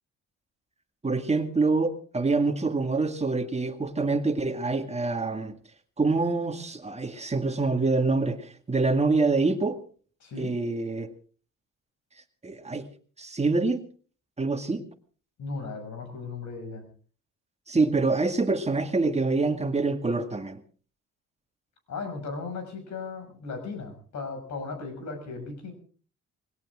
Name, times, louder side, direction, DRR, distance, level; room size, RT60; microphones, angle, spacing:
voice 1, 1.0-5.5 6.0-9.8 10.4-11.1 12.4-12.9 13.2-13.8 14.4-14.8 17.7-20.6, right 3 dB, 20° right, 7 dB, 2.0 m, -26 dB
voice 2, 10.2-10.5 15.4-16.9 21.9-25.7, left 4 dB, 65° left, 6 dB, 6.3 m, -36 dB
20.0 x 17.5 x 3.7 m, 0.41 s
cardioid pair, 90°, 30 cm